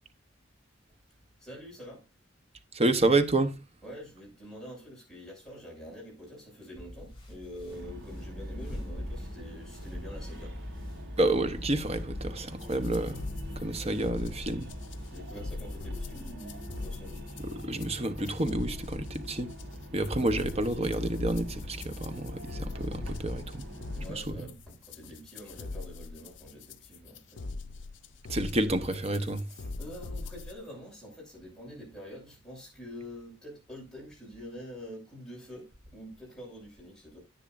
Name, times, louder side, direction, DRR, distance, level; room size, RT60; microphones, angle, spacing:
voice 1, 1.4-2.1 3.8-10.7 15.1-17.2 23.9-27.4 29.5-37.2, equal, 5° left, 6.8 m, -46 dB
voice 2, 2.7-3.5 11.2-13.2 13.6-14.7 17.5-19.5 19.9-23.6 24.1-24.2 28.3-29.4, right 2 dB, 30° right, 0.9 m, -29 dB
sound 1, 6.7-15.8, equal, 25° left, 4.0 m, -47 dB
sound 2, 7.7-24.0, equal, 70° right, 4.3 m, -42 dB
sound 3, 12.6-30.5, left 3 dB, 65° left, 0.6 m, -42 dB
10.0 x 9.9 x 2.5 m
head